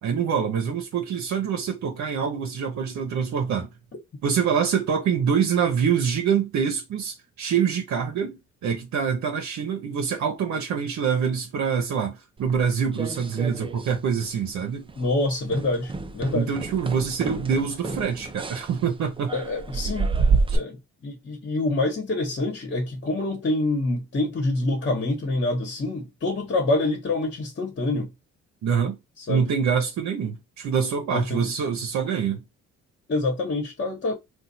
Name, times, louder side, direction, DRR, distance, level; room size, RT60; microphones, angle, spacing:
voice 1, 0.0-3.7 4.2-14.9 16.3-19.3 28.6-29.0 29.3-32.4, right 7 dB, 65° right, 0.8 m, -25 dB
sound 1, 12.5-13.9 14.2-14.6 14.9-15.1 15.5-20.6, right 4 dB, 20° right, 0.5 m, -28 dB
voice 2, 15.0-16.5 19.3-20.1 20.5-28.1 29.3-29.5 31.1-31.5 33.1-34.1, left 2 dB, 40° left, 1.3 m, -26 dB
2.5 x 2.4 x 4.1 m
cardioid pair, 90°, 30 cm